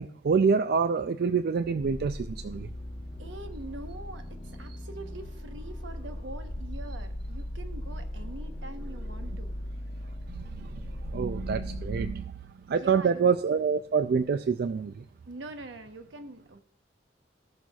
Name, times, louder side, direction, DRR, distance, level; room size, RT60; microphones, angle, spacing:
voice 1, 0.0-2.7 10.3-10.9 11.1-12.2 12.7-15.0, right 5 dB, 55° right, 10 dB, 0.4 m, -26 dB
sound 1, 1.8-12.1, left 1 dB, 30° left, 1.0 m, -38 dB
voice 2, 3.2-9.6 12.7-13.2 15.3-16.6, right 2 dB, 80° right, 7 dB, 1.0 m, -44 dB
18.5 x 6.3 x 2.3 m, 0.73 s
head